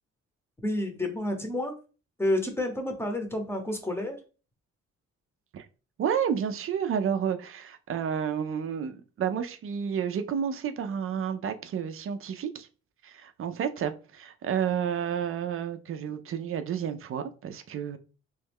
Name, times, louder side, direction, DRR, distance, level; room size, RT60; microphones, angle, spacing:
voice 1, 0.6-1.7 2.2-4.2, left 1 dB, 10° left, 0.8 m, -29 dB
voice 2, 6.0-12.7 13.0-18.0, right 8 dB, 45° right, 0.4 m, -30 dB
3.1 x 2.2 x 3.4 m
cardioid pair, 90°, 30 cm